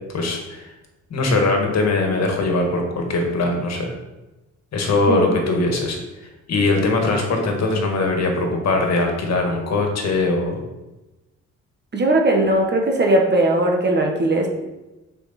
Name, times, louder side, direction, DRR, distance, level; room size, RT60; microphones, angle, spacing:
voice 1, 0.1-0.7 1.1-3.9 4.7-6.0 6.5-10.6, left 2 dB, 60° left, 2 dB, 1.7 m, -21 dB
voice 2, 11.9-14.6, right 1 dB, 35° right, 1 dB, 1.4 m, -18 dB
6.4 x 5.0 x 4.3 m, 1.0 s
cardioid pair, 90°, 30 cm